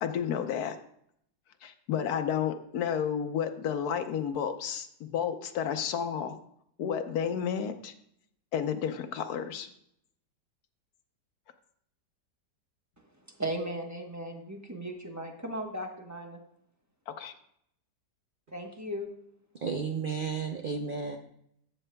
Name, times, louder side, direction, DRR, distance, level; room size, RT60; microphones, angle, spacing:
voice 1, 0.0-0.8 1.6-6.4 6.8-7.9 8.5-9.7 17.1-17.3, left 8 dB, 65° left, 7 dB, 1.2 m, -31 dB
voice 2, 13.4-16.4 18.5-19.1, right 1 dB, 15° right, 2 dB, 0.9 m, -36 dB
voice 3, 19.5-21.2, right 5 dB, 80° right, 3 dB, 0.4 m, -33 dB
12.5 x 7.7 x 2.2 m, 0.72 s
omnidirectional pair, 1.8 m